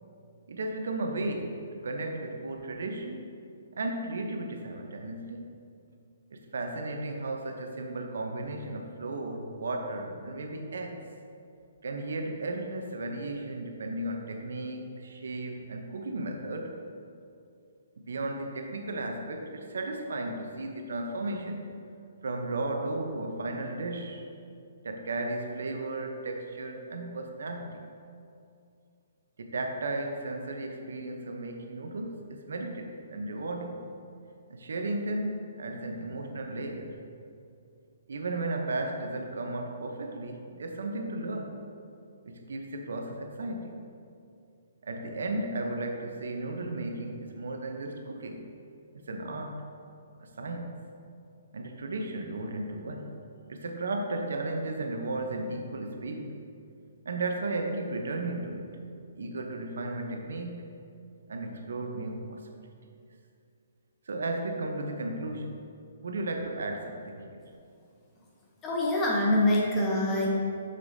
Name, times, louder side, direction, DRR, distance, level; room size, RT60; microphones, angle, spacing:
voice 1, 0.5-3.3 3.7-5.5 6.3-11.1 11.8-16.8 18.0-21.8 22.2-24.3 24.8-27.8 29.4-33.9 34.5-37.0 38.1-41.7 42.3-43.9 44.8-48.5 48.9-49.6 50.2-50.8 51.5-53.2 53.5-56.4 57.0-58.8 59.2-60.8 61.3-62.5 64.1-65.6 66.0-67.4, right 2 dB, 80° right, 4 dB, 0.7 m, -35 dB
voice 2, 68.6-70.3, left 1 dB, 10° left, -3 dB, 0.7 m, -25 dB
6.6 x 6.4 x 2.7 m, 2.5 s
hypercardioid pair, 175°, 0 cm